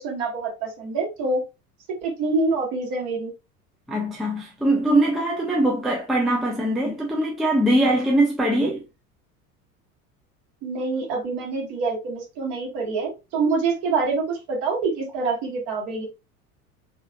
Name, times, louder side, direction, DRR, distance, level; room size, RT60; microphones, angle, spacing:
voice 1, 0.0-1.4 2.0-3.3 10.6-16.1, right 3 dB, 45° right, 1.4 m, -26 dB
voice 2, 3.9-8.8, right 1 dB, ahead, 0.5 m, -22 dB
3.3 x 2.9 x 2.2 m
figure-of-eight pair, 75°, 45 cm